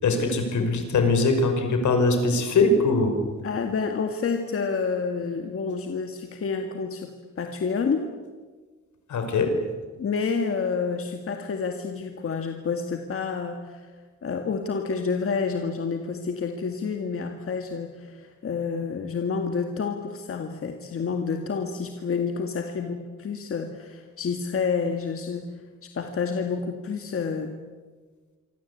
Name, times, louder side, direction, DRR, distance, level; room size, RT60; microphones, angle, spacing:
voice 1, 0.0-3.2 9.1-9.5, left 3 dB, 75° left, 6 dB, 5.5 m, -22 dB
voice 2, 3.4-8.1 10.0-13.9 14.2-25.5 25.8-27.5, left 5 dB, 45° left, 5 dB, 2.1 m, -29 dB
27.0 x 25.5 x 8.6 m, 1.4 s
wide cardioid pair, 165°, 30 cm